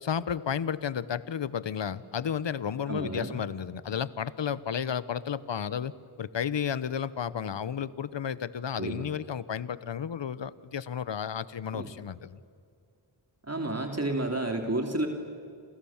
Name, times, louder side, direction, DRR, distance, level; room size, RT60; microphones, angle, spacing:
voice 1, 0.0-5.9 6.2-12.4, left 8 dB, 60° left, 17 dB, 1.1 m, -32 dB
voice 2, 2.9-3.3 8.7-9.0 11.7-11.9 13.4-15.1, right 2 dB, 30° right, 3 dB, 3.0 m, -31 dB
28.5 x 28.0 x 7.3 m, 2.3 s
cardioid pair, 55°, 48 cm